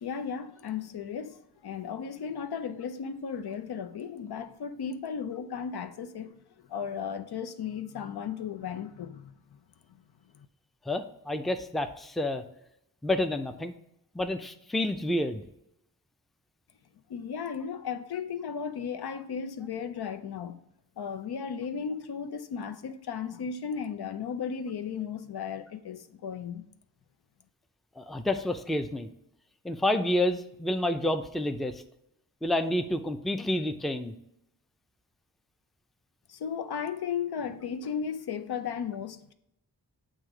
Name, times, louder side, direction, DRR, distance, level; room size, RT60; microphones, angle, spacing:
voice 1, 0.0-6.4 6.7-9.6 10.3-10.5 17.1-20.6 21.0-26.6 36.3-39.3, left 7 dB, 80° left, 0.6 m, -35 dB
voice 2, 10.9-12.4 13.0-13.7 14.1-15.4 28.0-29.1 29.6-31.8 32.4-34.1, left 1 dB, ahead, 0.4 m, -29 dB
7.5 x 2.7 x 4.8 m
wide cardioid pair, 65°, 38 cm